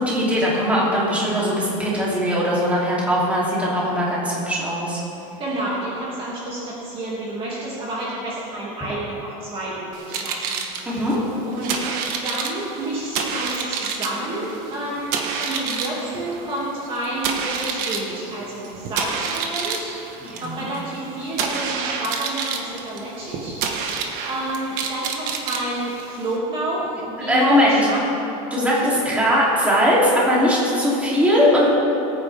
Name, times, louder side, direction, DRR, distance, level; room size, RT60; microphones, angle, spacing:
voice 1, 0.0-5.0 10.8-11.2 20.2-20.6 27.3-27.8 28.5-31.7, equal, 5° right, -7 dB, 3.1 m, -20 dB
voice 2, 5.4-11.2 11.4-11.7 12.2-19.9 20.4-23.5 24.0-28.0 28.7-28.9, right 1 dB, 30° right, -6 dB, 2.4 m, -29 dB
sound 1, 9.9-26.4, right 6 dB, 50° right, 1.5 m, -29 dB
22.0 x 9.4 x 3.5 m, 2.9 s
supercardioid pair, 150°, 18 cm